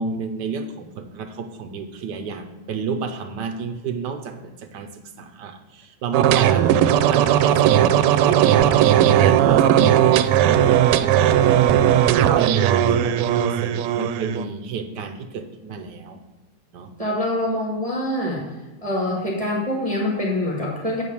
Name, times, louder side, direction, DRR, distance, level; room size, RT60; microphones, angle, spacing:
voice 1, 0.0-4.9 5.2-6.7 7.0-16.2 16.7-16.9, right 5 dB, 65° right, 7 dB, 1.2 m, -31 dB
sound 1, 6.1-14.4, right 10 dB, 90° right, 1.5 m, -17 dB
voice 2, 17.0-18.4 18.8-21.0, left 1 dB, 20° right, -4 dB, 1.4 m, -25 dB
8.8 x 4.7 x 6.9 m, 1.1 s
omnidirectional pair, 2.4 m